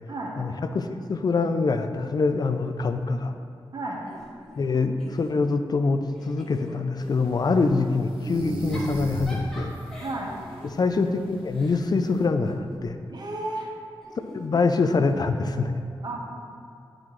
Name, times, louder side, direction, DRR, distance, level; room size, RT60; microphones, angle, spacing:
voice 1, 0.4-3.3 4.6-9.8 10.6-13.0 14.3-15.7, left 4 dB, 50° left, 8 dB, 0.4 m, -25 dB
Giggle / Chuckle chortle, 4.1-5.7 6.1-7.5 8.5-12.9 14.0-15.4, left 1 dB, 5° left, 1.4 m, -44 dB
sound 1, 7.0-12.2, right 1 dB, 85° right, 0.9 m, -36 dB
voice 2, 10.0-10.3 13.1-13.7 16.0-16.2, right 2 dB, 50° right, -1 dB, 0.8 m, -32 dB
8.5 x 3.8 x 3.0 m, 2.5 s
wide cardioid pair, 90°, 9 cm